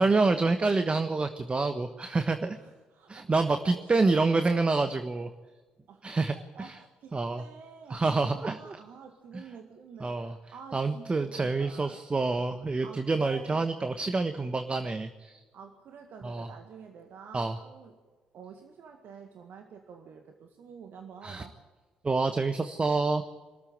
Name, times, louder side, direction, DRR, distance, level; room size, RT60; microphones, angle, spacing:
voice 1, 0.0-2.6 3.1-5.3 6.0-6.8 7.1-7.4 7.9-8.8 9.3-9.4 10.0-10.3 10.7-15.4 16.2-16.5 17.3-17.6 21.2-21.4 22.0-23.2, right 3 dB, 30° right, 8 dB, 1.3 m, -27 dB
voice 2, 2.5-4.6 5.9-6.0 6.3-12.0 12.8-13.6 15.5-18.0 18.3-21.6, right 6 dB, 55° right, 4 dB, 1.9 m, -49 dB
25.5 x 13.5 x 9.0 m, 1.3 s
figure-of-eight pair, 45°, 4 cm